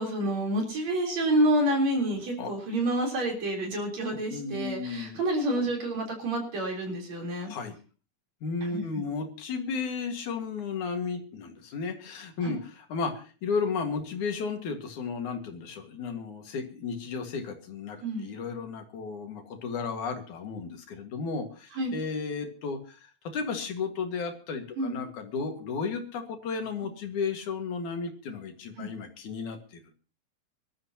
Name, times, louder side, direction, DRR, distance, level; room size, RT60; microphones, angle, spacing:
voice 1, 0.0-7.5 8.6-8.8 12.4-12.5 18.0-18.3 21.7-21.9 24.8-25.0 28.8-28.9, right 1 dB, 60° right, 1 dB, 5.0 m, -28 dB
voice 2, 4.3-5.2 5.6-5.7 7.5-7.7 8.4-29.8, left 5 dB, 75° left, 5 dB, 3.3 m, -34 dB
25.0 x 13.0 x 2.9 m, 0.35 s
omnidirectional pair, 3.5 m